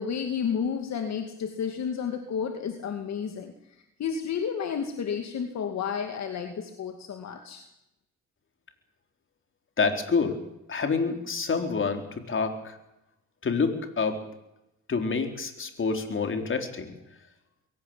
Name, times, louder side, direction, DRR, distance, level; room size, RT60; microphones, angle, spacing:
voice 1, 0.0-7.7, left 7 dB, 60° left, 5 dB, 2.5 m, -31 dB
voice 2, 9.8-10.3 10.7-12.8 13.4-14.2 14.9-16.9, left 4 dB, 40° left, 5 dB, 4.3 m, -27 dB
23.0 x 17.5 x 9.1 m, 0.87 s
cardioid pair, 90°, 30 cm